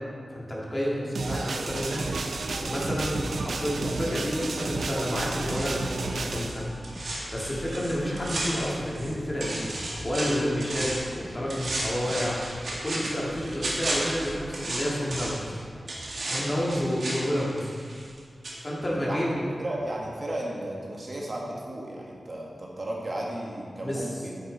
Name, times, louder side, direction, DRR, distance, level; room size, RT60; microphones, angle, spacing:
voice 1, 0.3-2.1 2.5-6.7 7.0-9.7 10.0-12.4 12.8-15.6 16.2-17.7 18.6-19.6 23.8-24.1, equal, 25° left, -4 dB, 2.0 m, -30 dB
sound 1, 1.1-6.5, right 3 dB, 90° right, 0.6 m, -32 dB
sound 2, 1.7-16.9, equal, 10° right, 0.5 m, -44 dB
sound 3, 5.1-9.1 9.4-11.1 11.5-15.5 15.9-18.2 18.4-18.6, right 1 dB, 70° right, 1.8 m, -34 dB
voice 2, 19.0-24.4, right 1 dB, 40° right, -2 dB, 1.4 m, -34 dB
8.9 x 8.8 x 4.0 m, 2.2 s
wide cardioid pair, 120°, 0 cm